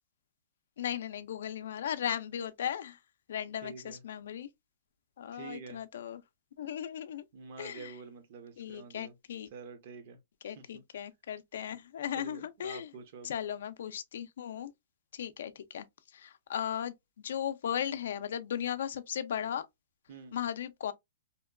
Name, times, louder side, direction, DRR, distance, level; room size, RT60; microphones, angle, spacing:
voice 1, 0.8-3.0 3.3-4.5 5.2-6.2 6.6-7.2 7.6-7.9 8.6-9.5 10.4-12.9 13.2-14.7 15.1-15.9 16.1-19.7 20.3-20.9, left 9 dB, 70° left, 0.3 m, -37 dB
voice 2, 3.6-4.0 5.3-5.8 7.3-9.1 9.5-10.2 10.5-10.8 12.1-13.3 20.1-20.4, right 5 dB, 50° right, 0.7 m, -47 dB
2.8 x 2.2 x 2.3 m
hypercardioid pair, 160°, 0 cm